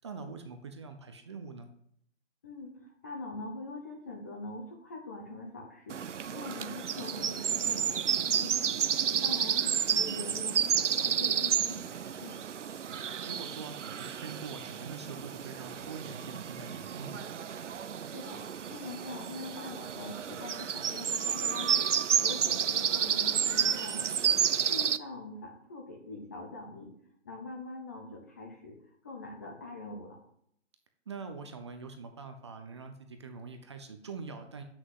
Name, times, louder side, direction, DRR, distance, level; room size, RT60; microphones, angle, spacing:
voice 1, 0.0-1.7 12.9-17.2 31.1-34.6, right 4 dB, 25° right, 6 dB, 0.7 m, -44 dB
voice 2, 2.4-6.0 6.3-8.8 9.1-12.4 18.1-21.9 22.2-24.3 24.7-26.9 27.2-28.7 29.0-30.2, left 2 dB, 15° left, 2 dB, 0.6 m, -43 dB
sound 1, 5.9-25.0, right 8 dB, 75° right, 0.7 m, -31 dB
7.7 x 6.4 x 7.6 m, 0.70 s
hypercardioid pair, 160°, 36 cm